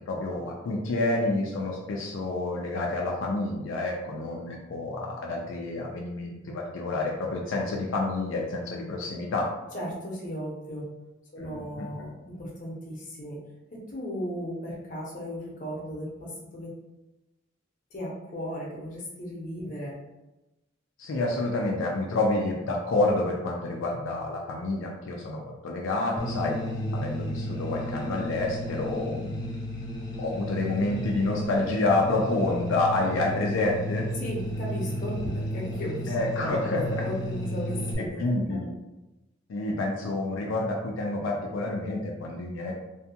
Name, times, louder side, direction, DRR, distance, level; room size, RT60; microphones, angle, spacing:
voice 1, 0.0-9.5 11.4-11.9 21.0-26.6 26.9-29.4 30.2-34.1 36.1-37.0 38.0-38.7 39.5-42.7, left 2 dB, 85° left, -1 dB, 0.4 m, -28 dB
voice 2, 9.7-10.8 11.3-13.4 13.7-16.7 17.9-19.9 34.1-36.7 37.0-38.2 38.5-38.6, equal, 45° left, -4 dB, 0.8 m, -36 dB
sound 1, 26.2-37.9, left 1 dB, 20° left, 0.4 m, -33 dB
2.6 x 2.2 x 2.7 m, 1.0 s
head